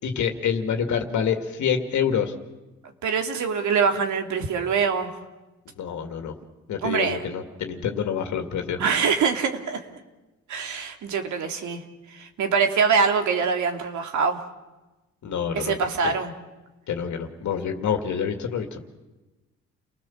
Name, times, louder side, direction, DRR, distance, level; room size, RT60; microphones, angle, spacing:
voice 1, 0.0-2.3 5.8-6.3 6.7-8.8 15.2-15.8 16.0-16.2 16.9-18.8, left 7 dB, 70° left, 5 dB, 2.3 m, -27 dB
voice 2, 3.0-5.1 6.8-7.2 8.8-9.8 10.5-11.8 12.1-14.4 15.5-16.3, right 5 dB, 70° right, 4 dB, 2.9 m, -24 dB
30.0 x 19.0 x 7.3 m, 1.1 s
cardioid pair, 90°, 30 cm